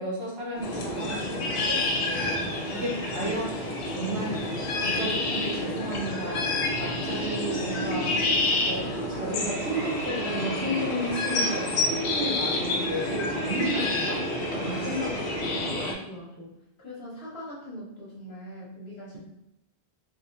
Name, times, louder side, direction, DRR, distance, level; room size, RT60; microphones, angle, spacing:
voice 1, 0.0-2.4 2.8-3.6 3.8-4.4 4.8-8.1 8.7-14.2 14.5-15.7, right 1 dB, 75° right, -3 dB, 1.2 m, -33 dB
Thunder, 0.5-5.8, equal, 45° left, 0.7 m, -42 dB
sound 1, 0.6-15.9, left 2 dB, 90° left, 0.9 m, -29 dB
voice 2, 2.6-2.9 14.8-15.1 15.8-16.5 16.8-19.2, equal, 70° left, -5 dB, 1.4 m, -42 dB
3.5 x 2.9 x 2.5 m, 0.89 s
omnidirectional pair, 1.1 m